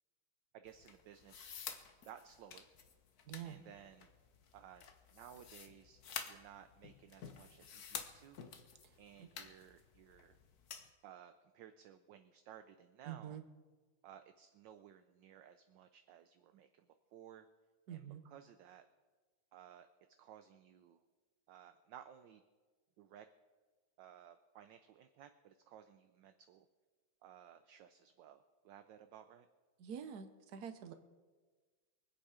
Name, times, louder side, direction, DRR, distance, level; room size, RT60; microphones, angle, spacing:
voice 1, 0.5-1.5 2.0-2.7 3.4-4.1 4.5-6.0 6.3-8.4 9.0-10.4 11.0-13.4 14.0-17.5 17.9-18.9 19.5-19.9 20.2-21.0 21.5-22.4 23.0-23.3 24.0-26.7 27.2-29.5, right 10 dB, 70° right, 9 dB, 1.2 m, -58 dB
sound 1, 0.6-10.9, left 7 dB, 55° left, 1.3 m, -51 dB
voice 2, 3.3-3.6 8.8-8.9 9.2-9.3 13.0-13.4 17.9-18.2 29.8-30.9, right 8 dB, 55° right, 8 dB, 1.3 m, -46 dB
24.0 x 8.3 x 4.9 m, 1.4 s
omnidirectional pair, 2.4 m